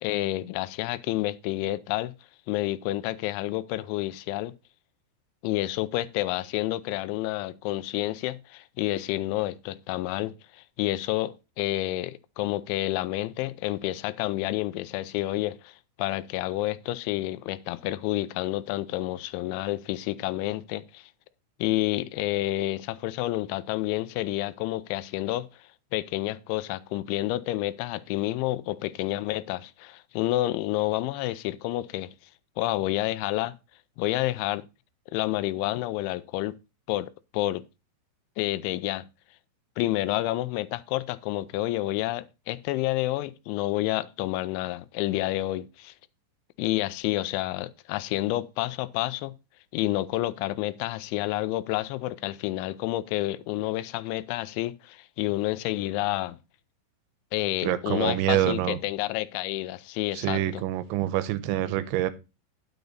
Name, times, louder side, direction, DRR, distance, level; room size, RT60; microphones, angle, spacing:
voice 1, 0.0-2.1 2.5-4.5 5.4-21.1 21.6-25.5 25.9-32.1 32.6-33.6 34.0-34.6 35.1-36.5 36.9-37.6 38.4-39.1 39.8-45.9 46.6-49.3 49.7-56.4 57.3-60.6, left 16 dB, 85° left, 3.0 m, -29 dB
voice 2, 57.6-58.8 60.1-62.1, right 13 dB, 85° right, 3.0 m, -26 dB
10.5 x 6.9 x 3.9 m
omnidirectional pair, 5.4 m